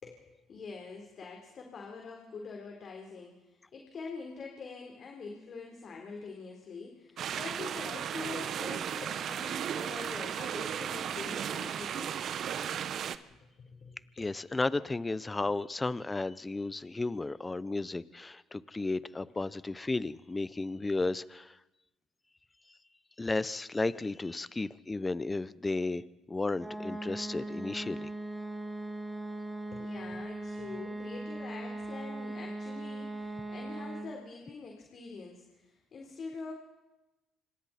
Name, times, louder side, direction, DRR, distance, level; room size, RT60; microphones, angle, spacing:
voice 1, 0.0-12.8 13.6-14.3 29.7-36.5, left 4 dB, 50° left, 1 dB, 3.9 m, -45 dB
sound 1, 7.2-13.2, right 9 dB, 60° right, 1.1 m, -35 dB
voice 2, 14.2-21.6 23.2-28.1, left 3 dB, 20° left, 17 dB, 0.9 m, -33 dB
sound 2, 26.5-34.2, right 2 dB, 10° right, 3.3 m, -39 dB
27.5 x 25.5 x 4.4 m, 1.0 s
supercardioid pair, 65°, 0 cm